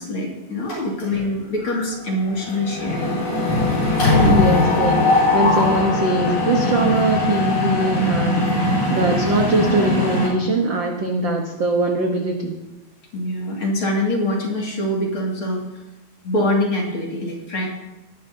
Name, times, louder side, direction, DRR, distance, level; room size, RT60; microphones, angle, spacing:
voice 1, 0.0-3.2 8.5-9.0 13.1-15.8 16.2-17.7, left 1 dB, 45° left, -2 dB, 2.8 m, -24 dB
Mechanisms, 0.7-1.3 1.6-1.8 2.1-10.3, left 2 dB, 60° left, 6.2 m, -20 dB
voice 2, 4.2-12.5, right 2 dB, 60° right, 1 dB, 1.2 m, -22 dB
19.0 x 12.0 x 2.8 m, 1.0 s
omnidirectional pair, 3.7 m